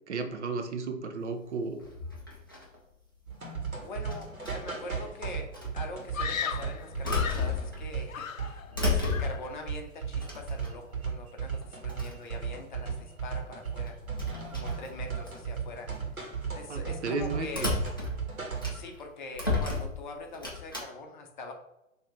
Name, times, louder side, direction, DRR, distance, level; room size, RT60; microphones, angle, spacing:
voice 1, 0.1-1.8 16.7-17.7, right 4 dB, 55° right, 5 dB, 0.7 m, -33 dB
sound 1, 1.8-2.8 4.1-4.8 5.5-5.7 6.5-8.0 8.4-9.6 10.2-11.0 11.6-11.7 11.9-12.3 13.8-15.4 15.9-16.2 17.5-19.0 19.3-20.8, left 3 dB, 20° left, 0.3 m, -33 dB
sound 2, 3.3-18.9, right 6 dB, 85° right, 1.4 m, -36 dB
voice 2, 3.8-5.5 5.7-14.0 14.5-15.9 16.5-17.7 18.7-21.5, left 2 dB, 35° left, 3 dB, 0.7 m, -43 dB
Screaming, 6.1-7.6 8.1-8.8 9.0-9.5, left 7 dB, 75° left, 0.5 m, -35 dB
5.8 x 2.8 x 3.1 m, 0.89 s
figure-of-eight pair, 120°, 41 cm